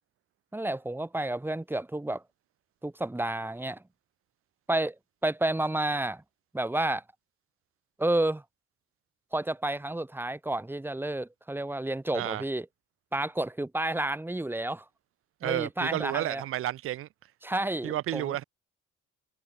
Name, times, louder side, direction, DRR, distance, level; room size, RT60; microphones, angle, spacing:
voice 1, 0.5-2.2 2.8-3.8 4.7-5.0 5.2-6.2 6.5-7.0 8.0-8.4 9.3-12.7 13.1-14.8 15.4-16.4 17.4-18.3, right 1 dB, 5° right, 0.7 m, -30 dB
voice 2, 15.4-17.1 17.8-18.4, right 13 dB, 40° right, 0.4 m, -31 dB
hypercardioid pair, 50°, 34 cm